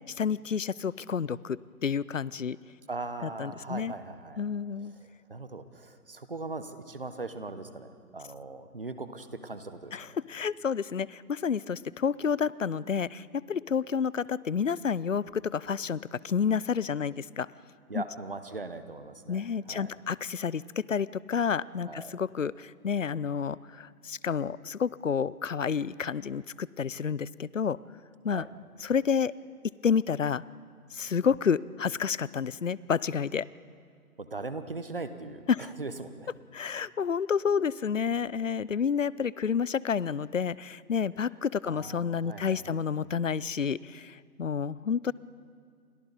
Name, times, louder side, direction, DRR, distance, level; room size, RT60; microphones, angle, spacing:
voice 1, 0.1-2.6 3.2-3.9 4.4-4.9 9.9-17.5 17.9-18.0 19.3-27.8 28.2-28.5 28.8-29.3 29.8-30.4 30.9-33.5 35.5-35.7 36.5-45.1, left 6 dB, 55° left, 21 dB, 0.5 m, -30 dB
voice 2, 2.9-4.4 5.0-10.0 17.9-19.9 21.8-22.2 28.3-28.5 34.2-36.3 41.6-42.8, right 3 dB, 35° right, 11 dB, 1.0 m, -40 dB
29.5 x 25.0 x 4.1 m, 2.3 s
hypercardioid pair, 175°, 46 cm